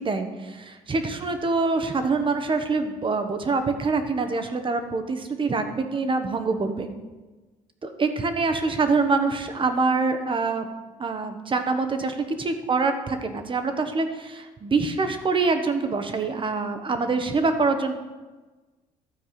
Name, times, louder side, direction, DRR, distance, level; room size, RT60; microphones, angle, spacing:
voice 1, 0.0-6.9 7.8-10.7 11.0-17.9, right 4 dB, 35° right, 7 dB, 1.3 m, -25 dB
12.0 x 4.6 x 7.6 m, 1.2 s
supercardioid pair, 85°, 16 cm